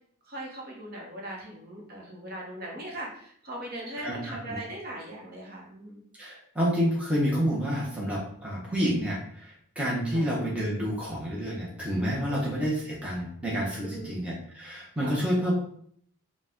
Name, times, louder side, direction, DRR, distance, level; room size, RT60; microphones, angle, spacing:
voice 1, 0.2-6.0 10.1-10.4 12.1-12.5 13.8-14.2 15.0-15.2, right 1 dB, 45° right, -2 dB, 1.0 m, -40 dB
voice 2, 4.0-4.6 6.2-15.5, equal, 5° right, -5 dB, 0.8 m, -29 dB
4.7 x 2.3 x 3.7 m, 0.64 s
head